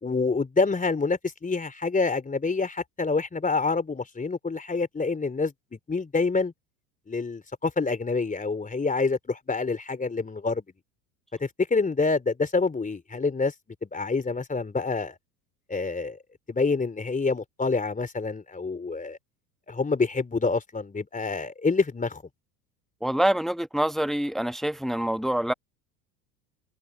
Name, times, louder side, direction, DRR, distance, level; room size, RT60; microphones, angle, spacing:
voice 1, 0.0-6.5 7.1-10.6 11.4-13.5 13.8-15.2 15.7-16.2 16.5-19.2 19.7-22.2, left 4 dB, 15° left, 3.9 m, -27 dB
voice 2, 23.0-25.5, right 1 dB, ahead, 1.3 m, -26 dB
hypercardioid pair, 80°, 47 cm